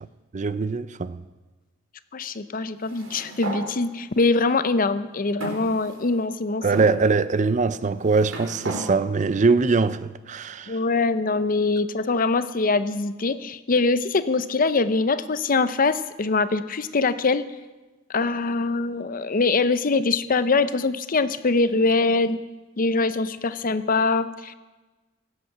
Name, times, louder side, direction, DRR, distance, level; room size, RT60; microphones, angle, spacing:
voice 1, 0.3-1.2 6.6-10.8, right 4 dB, 40° right, 0.5 m, -22 dB
voice 2, 2.1-6.6 10.7-17.4 18.1-22.4 22.8-24.5, left 3 dB, 45° left, 0.6 m, -23 dB
sound 1, 2.8-3.6 4.5-4.6 5.4-6.2 6.7-6.9 7.8-8.8, right 2 dB, 90° right, 3.7 m, -35 dB
16.5 x 8.0 x 7.9 m
head